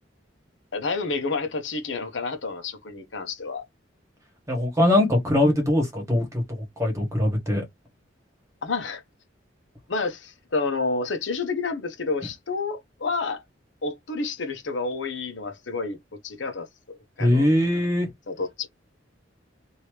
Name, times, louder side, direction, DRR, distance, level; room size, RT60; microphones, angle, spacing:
voice 1, 0.7-3.6 8.6-9.0 9.9-13.4 13.8-16.0 16.2-16.7 17.2-17.5 18.3-18.7, left 3 dB, 75° left, 0.9 m, -29 dB
voice 2, 4.5-6.4 6.8-7.6 17.2-18.1, left 1 dB, 15° right, 1.5 m, -21 dB
3.0 x 2.7 x 3.2 m
head